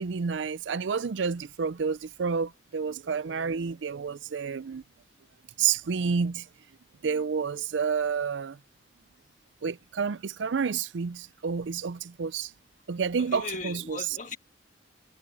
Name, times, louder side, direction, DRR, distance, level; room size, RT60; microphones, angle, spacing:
voice 1, 0.0-4.8 5.6-6.5 7.0-8.6 9.6-12.5 12.9-14.0, right 6 dB, 75° right, 0.5 m, -29 dB
voice 2, 13.2-14.4, left 3 dB, 40° left, 1.6 m, -38 dB
head